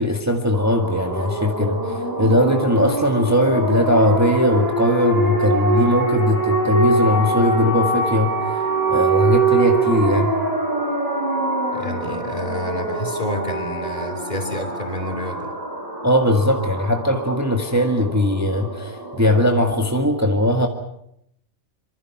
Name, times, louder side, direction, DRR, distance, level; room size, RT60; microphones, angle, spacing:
voice 1, 0.0-10.3 16.0-20.7, left 1 dB, 10° right, 3 dB, 1.7 m, -19 dB
sound 1, 0.5-20.0, right 2 dB, 30° right, 7.0 m, -24 dB
voice 2, 11.7-15.5, equal, 30° left, 6 dB, 3.6 m, -29 dB
26.0 x 24.5 x 5.9 m, 0.74 s
omnidirectional pair, 1.4 m